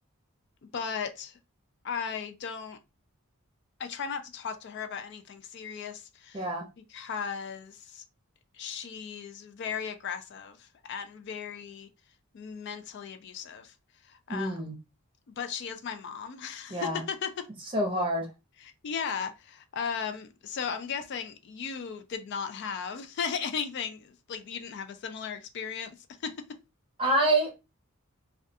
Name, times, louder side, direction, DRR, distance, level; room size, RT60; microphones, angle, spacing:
voice 1, 0.7-1.4 1.8-2.8 3.8-6.4 6.9-8.0 8.5-11.9 12.3-13.7 14.1-14.5 15.4-17.5 18.8-26.6, left 6 dB, 50° left, 0.3 m, -36 dB
voice 2, 6.3-6.7 14.3-14.7 16.7-17.0 17.7-18.3 27.0-27.5, right 1 dB, 25° right, 0.7 m, -26 dB
2.3 x 2.2 x 2.6 m
head